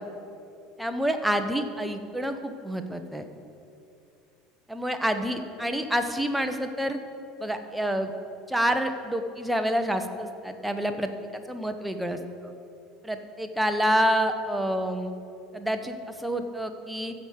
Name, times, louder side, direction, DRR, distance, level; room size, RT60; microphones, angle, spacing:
voice 1, 0.8-3.3 4.7-7.0 7.4-8.1 8.5-12.5 13.0-15.1 15.5-17.1, equal, 5° right, 7 dB, 1.0 m, -28 dB
15.0 x 5.0 x 7.9 m, 2.6 s
figure-of-eight pair, 70°, 0 cm